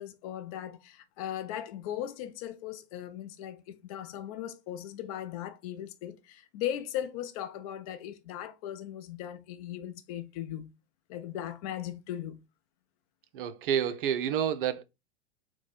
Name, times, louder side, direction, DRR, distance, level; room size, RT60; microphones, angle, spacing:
voice 1, 0.0-10.7 11.1-12.4, left 11 dB, 35° left, 0.4 m, -38 dB
voice 2, 13.3-14.8, right 9 dB, 55° right, 0.5 m, -29 dB
4.0 x 2.2 x 4.2 m
figure-of-eight pair, 95°, 33 cm